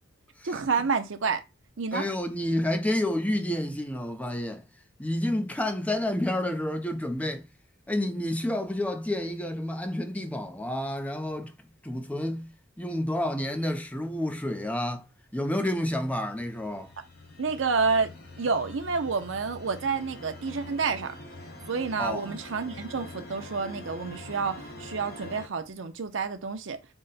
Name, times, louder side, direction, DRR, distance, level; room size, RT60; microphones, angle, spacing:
voice 1, 0.4-1.4 1.8-2.1 17.4-18.1 18.4-21.1 21.7-26.8, right 5 dB, 65° right, 0.6 m, -29 dB
voice 2, 1.9-4.6 5.0-7.5 7.9-11.5 11.8-15.0 15.3-16.9 22.0-22.4, left 1 dB, 5° left, 0.5 m, -29 dB
sound 1, 15.9-25.5, left 1 dB, 50° left, 1.0 m, -44 dB
3.9 x 2.2 x 4.0 m
head